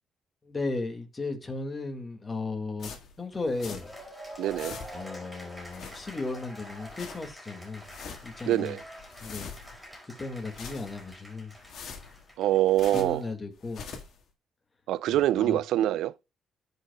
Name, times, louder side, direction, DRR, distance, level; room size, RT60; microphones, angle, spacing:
voice 1, 0.4-2.9 3.2-3.9 4.9-7.9 8.2-8.8 9.2-9.6 10.2-11.5 12.9-13.9 15.1-15.6, left 3 dB, 25° left, 2.0 m, -35 dB
sound 1, 2.8-4.1 4.3-5.2 5.6-6.4 6.7-7.3 7.7-8.4 8.8-9.9 10.3-11.2 11.5-13.3 13.6-14.2, left 6 dB, 65° left, 1.7 m, -44 dB
Cheering / Applause, 3.5-13.1, equal, ahead, 4.8 m, -46 dB
voice 2, 4.4-4.8 8.5-8.8 12.4-13.2 14.9-16.1, right 13 dB, 85° right, 0.3 m, -25 dB
16.0 x 5.4 x 2.3 m
cardioid pair, 90°, 0 cm